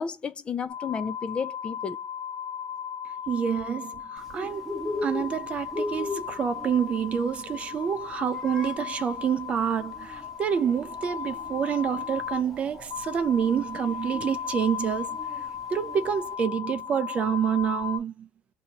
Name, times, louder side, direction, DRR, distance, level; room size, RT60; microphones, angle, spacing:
voice 1, 0.0-2.0, left 6 dB, 25° left, 0.4 m, -32 dB
sound 1, 0.7-18.0, left 8 dB, 55° left, 1.1 m, -36 dB
voice 2, 3.3-15.2 15.7-18.3, right 8 dB, 30° right, 0.5 m, -28 dB
Bird, 4.2-16.3, left 2 dB, 5° right, 1.0 m, -39 dB
2.8 x 2.7 x 2.8 m
cardioid pair, 135°, 4 cm